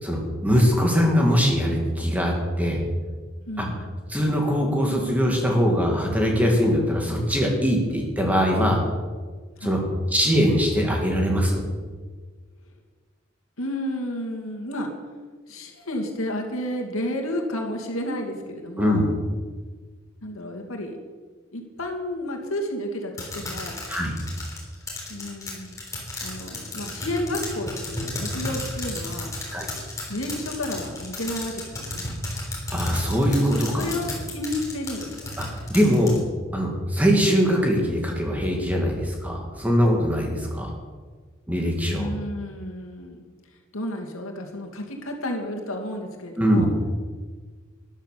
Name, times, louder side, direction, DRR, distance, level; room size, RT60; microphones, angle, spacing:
voice 1, 0.0-2.8 3.6-3.7 4.1-8.8 9.6-9.8 10.1-11.6 18.8-19.0 23.9-24.1 29.5-29.7 32.7-33.9 35.4-36.1 36.5-40.7 41.5-42.1 46.4-46.7, equal, 5° right, 0 dB, 2.3 m, -22 dB
voice 2, 3.5-3.8 9.6-9.8 13.6-14.9 15.5-19.0 20.2-21.0 21.5-23.8 25.1-25.8 26.2-29.3 30.1-32.1 33.8-35.3 41.8-43.3 43.7-46.7, left 1 dB, 80° left, 2 dB, 2.4 m, -31 dB
sound 1, 23.2-36.2, left 2 dB, 15° left, 3.7 m, -33 dB
13.0 x 11.0 x 6.8 m, 1.5 s
head